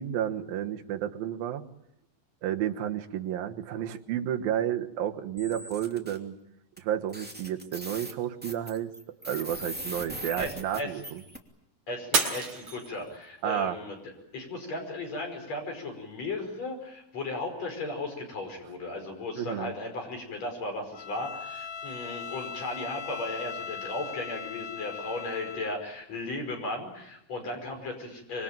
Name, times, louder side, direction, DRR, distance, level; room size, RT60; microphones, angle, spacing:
voice 1, 0.0-1.7 2.4-6.4 6.8-8.9 9.2-11.2 13.4-13.8 19.4-19.7, right 11 dB, 85° right, 6 dB, 3.1 m, -31 dB
sound 1, 5.4-6.2 6.8-6.9 7.1-11.4, right 1 dB, 5° right, 2.1 m, -40 dB
voice 2, 10.4-11.0 11.9-14.0 14.3-28.4, left 2 dB, 50° left, 3 dB, 6.4 m, -36 dB
Shatter, 12.1-13.4 14.0-14.4 15.0-15.1, right 4 dB, 55° right, 5.2 m, -29 dB
Bowed string instrument, 20.9-25.8, left 6 dB, 65° left, 1.1 m, -39 dB
26.0 x 24.0 x 9.0 m, 0.83 s
omnidirectional pair, 4.0 m